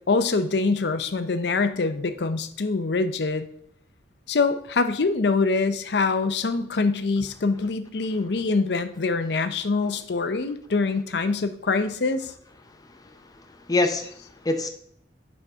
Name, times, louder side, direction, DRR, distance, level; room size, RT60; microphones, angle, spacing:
voice 1, 0.1-3.5 4.3-12.3, left 4 dB, 65° left, 10 dB, 0.6 m, -24 dB
voice 2, 12.7-14.7, left 2 dB, 20° left, 6 dB, 0.7 m, -27 dB
7.0 x 5.4 x 3.5 m, 0.65 s
head